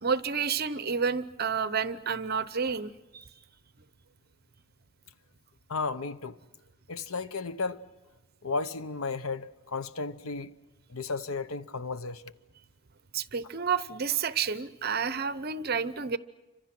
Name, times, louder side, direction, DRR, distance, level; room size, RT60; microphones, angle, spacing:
voice 1, 0.0-3.3 13.1-16.2, right 6 dB, 45° right, 0.8 m, -30 dB
voice 2, 5.7-6.4 6.9-7.8 8.4-10.5 10.9-12.2, left 4 dB, 80° left, 1.0 m, -34 dB
29.0 x 26.0 x 6.1 m
head